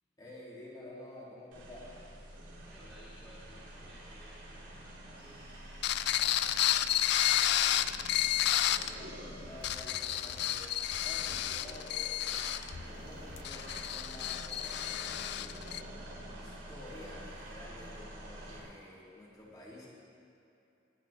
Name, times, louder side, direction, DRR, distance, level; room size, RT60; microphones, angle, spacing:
voice 1, 0.2-1.9 8.6-10.7 11.0-15.7 16.3-19.9, left 1 dB, 20° left, -7 dB, 3.5 m, -50 dB
sound 1, 1.5-18.6, right 1 dB, 70° right, 3.1 m, -47 dB
voice 2, 2.6-6.1 6.7-7.8, equal, ahead, -12 dB, 2.4 m, -58 dB
sound 2, 5.8-8.9 9.5-15.8, left 12 dB, 60° left, 0.4 m, -31 dB
23.0 x 10.0 x 3.7 m, 2.8 s
head